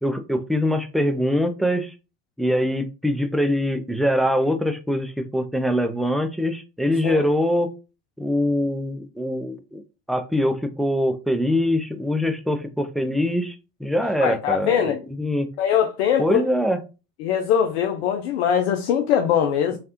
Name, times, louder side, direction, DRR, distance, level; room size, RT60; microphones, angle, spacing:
voice 1, 0.0-1.9 2.4-7.7 8.2-9.8 10.1-13.5 13.8-15.5 16.2-16.8, equal, ahead, 0.4 m, -23 dB
voice 2, 14.2-15.0 15.6-16.4 17.2-19.8, left 8 dB, 80° left, 0.5 m, -21 dB
3.2 x 2.4 x 2.9 m
hypercardioid pair, 80°, 32 cm